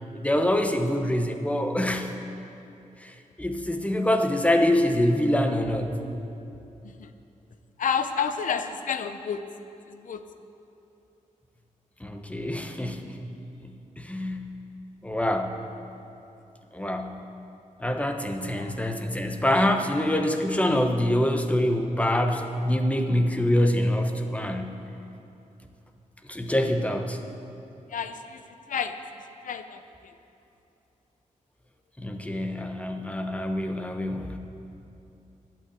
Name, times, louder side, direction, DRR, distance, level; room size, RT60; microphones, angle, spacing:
voice 1, 0.1-2.1 3.0-5.9 12.0-13.2 14.0-14.6 15.0-15.6 16.7-17.2 17.8-24.8 26.3-27.2 32.0-34.4, left 1 dB, 10° left, 5 dB, 1.0 m, -25 dB
voice 2, 7.8-9.4 9.9-10.2 18.6-18.8 27.9-29.0 29.4-30.1, left 7 dB, 80° left, 9 dB, 0.7 m, -30 dB
11.5 x 8.8 x 8.2 m, 2.8 s
wide cardioid pair, 95°, 13 cm